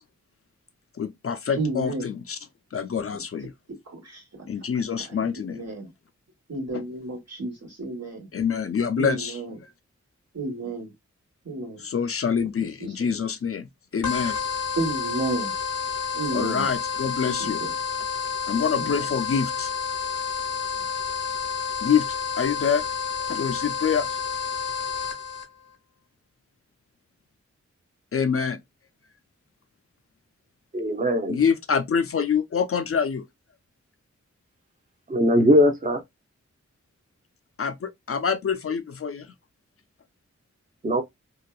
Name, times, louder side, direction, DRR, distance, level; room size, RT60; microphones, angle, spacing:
voice 1, 1.0-2.4 2.7-3.5 4.5-5.6 6.7-6.8 8.3-9.4 11.8-14.4 16.3-17.6 18.5-19.7 21.8-22.1 22.4-22.9 23.2-24.2 28.1-28.6 31.3-33.2 37.6-39.3, left 6 dB, 50° left, 0.4 m, -26 dB
voice 2, 1.6-2.1 3.1-3.2 3.9-4.5 5.3-5.9 6.5-8.3 9.0-9.5 10.3-10.9 11.4-11.9 12.6-13.1 14.7-15.5 16.1-16.7 17.2-17.3 17.6-17.7 18.8-19.0, right 3 dB, 60° right, 1.3 m, -32 dB
sound 1, 14.0-25.4, left 6 dB, 85° left, 0.7 m, -30 dB
voice 3, 30.7-31.4 35.1-36.0 40.8-41.0, equal, 30° right, 0.6 m, -20 dB
2.6 x 2.2 x 2.2 m
wide cardioid pair, 60°, 29 cm